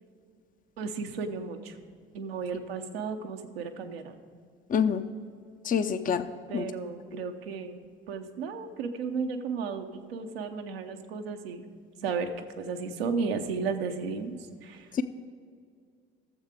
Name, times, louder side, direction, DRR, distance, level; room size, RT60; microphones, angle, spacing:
voice 1, 0.8-1.7 2.1-4.2 6.5-11.6 12.0-12.3 12.6-14.4 14.6-14.8, right 5 dB, 80° right, 5 dB, 0.9 m, -34 dB
voice 2, 4.7-5.0 5.6-6.3 6.5-6.7 7.1-7.2 14.9-15.0, left 7 dB, 30° left, 10 dB, 0.6 m, -26 dB
12.5 x 7.3 x 5.0 m, 2.2 s
hypercardioid pair, 55°, 30 cm